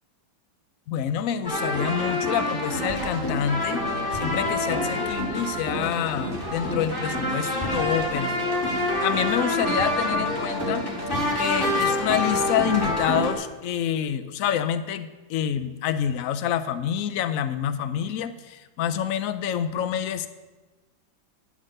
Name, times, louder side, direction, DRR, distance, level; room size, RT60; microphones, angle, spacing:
voice 1, 0.9-3.8 4.1-8.3 8.6-10.8 11.3-20.3, left 9 dB, 90° left, 11 dB, 0.7 m, -27 dB
sound 1, 1.4-13.3, left 1 dB, 10° left, 1.9 m, -26 dB
11.5 x 6.0 x 7.8 m, 1.2 s
omnidirectional pair, 2.1 m